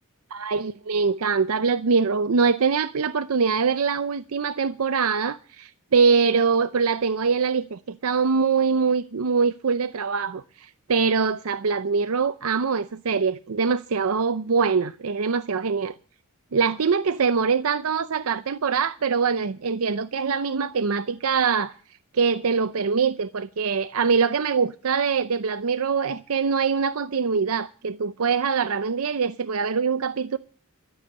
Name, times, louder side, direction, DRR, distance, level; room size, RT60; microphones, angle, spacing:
voice 1, 0.3-16.0 16.5-21.7 22.1-30.4, right 5 dB, 65° right, 0.6 m, -23 dB
14.0 x 7.1 x 9.5 m
head